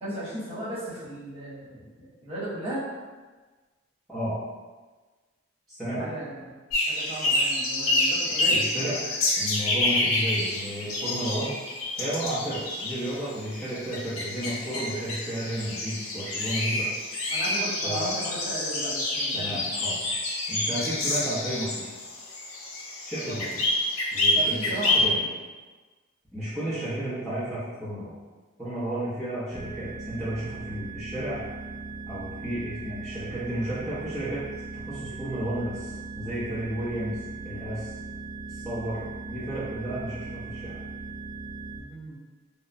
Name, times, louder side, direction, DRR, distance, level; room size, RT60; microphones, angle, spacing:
voice 1, 0.0-2.8 6.0-6.4 6.9-8.6 17.3-19.7 23.1-23.4 24.3-25.3 41.9-42.1, right 1 dB, 30° right, -11 dB, 1.0 m, -35 dB
voice 2, 5.7-6.0 8.5-9.0 9.4-11.6 12.0-16.9 17.8-18.1 19.3-20.0 20.5-21.8 23.1-23.5 24.1-25.2 26.3-28.2 28.6-31.4 32.1-34.4 34.9-37.2 37.4-37.9 38.5-40.8, right 1 dB, ahead, -14 dB, 0.6 m, -32 dB
sound 1, 6.7-25.0, left 2 dB, 80° left, 0.5 m, -28 dB
sound 2, 29.5-41.8, right 3 dB, 45° right, 0.5 m, -39 dB
3.0 x 2.0 x 2.4 m, 1.3 s
head